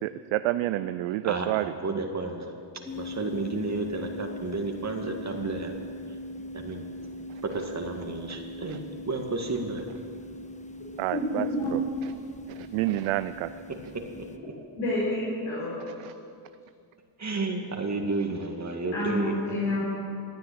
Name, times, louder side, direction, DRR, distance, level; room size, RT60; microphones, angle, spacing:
voice 1, 0.0-1.8 7.3-7.4 8.3-8.4 8.7-8.8 11.0-12.1 12.5-13.5 16.0-16.1, right 15 dB, 80° right, 13 dB, 0.6 m, -30 dB
voice 2, 1.2-2.5 3.0-5.8 6.5-6.9 7.4-9.9 17.2-19.3, right 3 dB, 35° right, 3 dB, 2.0 m, -32 dB
sound 1, 2.9-14.4, left 1 dB, 15° left, 1.1 m, -41 dB
voice 3, 11.1-11.7 14.8-15.8 18.9-19.8, left 1 dB, 85° left, -8 dB, 4.8 m, -28 dB
15.0 x 9.5 x 8.6 m, 2.5 s
supercardioid pair, 65°, 48 cm